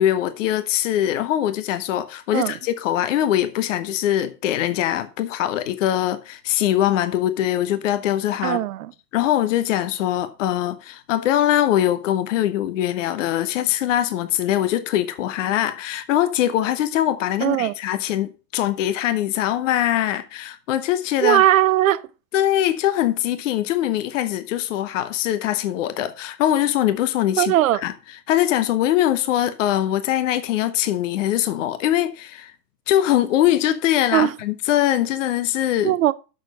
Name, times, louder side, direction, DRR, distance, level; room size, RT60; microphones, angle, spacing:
voice 1, 0.0-8.6 9.1-21.4 22.3-27.5 27.8-27.9 28.3-32.5 32.9-35.9, left 12 dB, 50° left, 0.9 m, -22 dB
voice 2, 8.4-8.9 17.4-17.7 21.2-22.0 27.4-27.8 34.1-34.3 35.8-36.1, right 13 dB, 55° right, 0.7 m, -18 dB
6.4 x 6.2 x 6.4 m
figure-of-eight pair, 100°, 49 cm